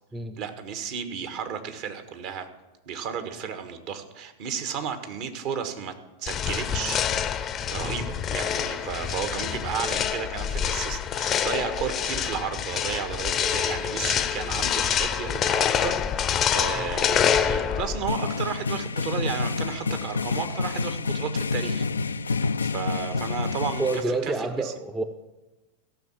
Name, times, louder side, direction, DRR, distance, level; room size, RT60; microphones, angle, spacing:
voice 1, 0.4-2.5 2.9-5.9 6.2-7.0 7.7-21.9 22.6-24.7, right 7 dB, 45° right, 8 dB, 1.4 m, -33 dB
sound 1, 6.3-18.1, left 8 dB, 30° left, 0.7 m, -26 dB
sound 2, 16.5-16.7 17.7-24.0, left 4 dB, 75° left, 0.3 m, -28 dB
voice 2, 23.8-25.0, right 2 dB, 10° right, 7 dB, 0.7 m, -29 dB
14.5 x 6.3 x 7.4 m, 1.1 s
figure-of-eight pair, 90°, 0 cm